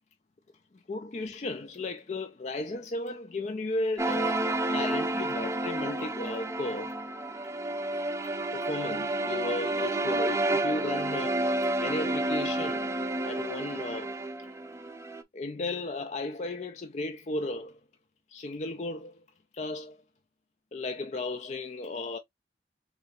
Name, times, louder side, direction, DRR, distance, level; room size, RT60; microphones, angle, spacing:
voice 1, 0.9-7.0 8.2-12.9 13.2-14.2 15.3-17.8 18.3-19.2 19.5-20.0 20.7-22.2, left 2 dB, 40° left, 0.4 m, -35 dB
sound 1, 4.0-15.2, right 2 dB, 15° right, 0.4 m, -30 dB
3.8 x 3.4 x 3.1 m
head